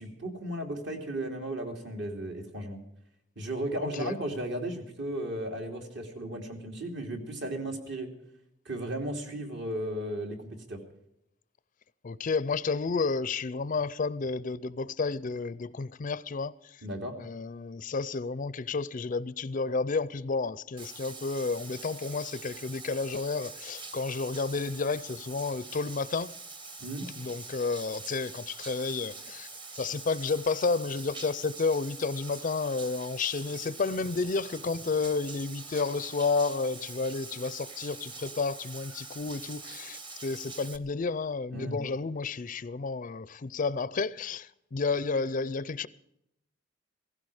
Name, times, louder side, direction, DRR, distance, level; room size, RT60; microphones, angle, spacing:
voice 1, 0.0-2.8 3.4-8.1 8.6-10.8 16.8-17.2 26.8-27.0 41.5-41.8, right 1 dB, 60° right, 3.0 m, -35 dB
voice 2, 3.8-4.1 12.0-16.5 17.2-26.3 27.2-29.5 29.8-45.9, left 4 dB, 40° left, 0.5 m, -31 dB
Bathtub (filling or washing), 20.8-40.8, right 3 dB, 25° right, 1.1 m, -44 dB
16.5 x 16.0 x 4.9 m
head